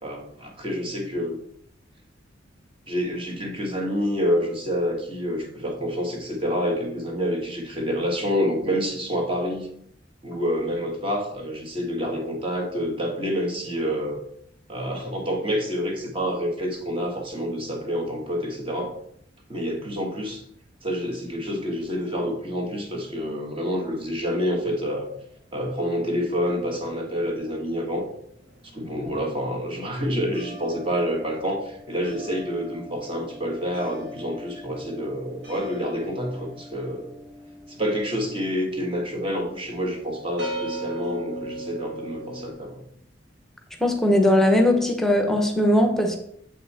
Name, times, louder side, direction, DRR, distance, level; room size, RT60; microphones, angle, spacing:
voice 1, 0.0-1.4 2.9-9.7 10.2-14.2 14.7-18.9 19.5-20.4 20.8-25.1 25.5-28.1 28.7-37.1 37.7-42.8, equal, 30° right, 2 dB, 1.5 m, -28 dB
sound 1, 25.0-27.5 27.7-42.5, right 1 dB, 75° right, 2.1 m, -40 dB
voice 2, 43.8-46.2, left 1 dB, ahead, 3 dB, 0.9 m, -19 dB
7.5 x 5.5 x 4.2 m, 0.69 s
head